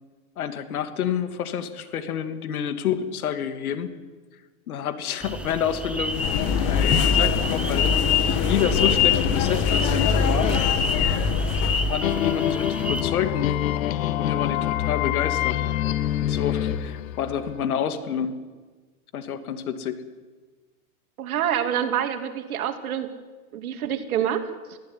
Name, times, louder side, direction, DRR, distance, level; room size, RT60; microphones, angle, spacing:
voice 1, 0.4-4.0 4.7-6.2 6.7-10.5 11.9-13.5 14.2-15.6 16.2-18.4 19.1-20.0, left 8 dB, 85° left, 9 dB, 2.5 m, -28 dB
sound 1, 5.2-13.0, right 2 dB, 5° right, 0.7 m, -32 dB
sound 2, 6.1-12.0, left 7 dB, 35° left, 1.9 m, -22 dB
sound 3, 12.0-17.6, left 12 dB, 70° left, 1.2 m, -26 dB
voice 2, 21.2-23.1 23.5-24.8, right 9 dB, 80° right, 7 dB, 2.8 m, -27 dB
22.0 x 15.5 x 9.9 m, 1.3 s
supercardioid pair, 155°, 42 cm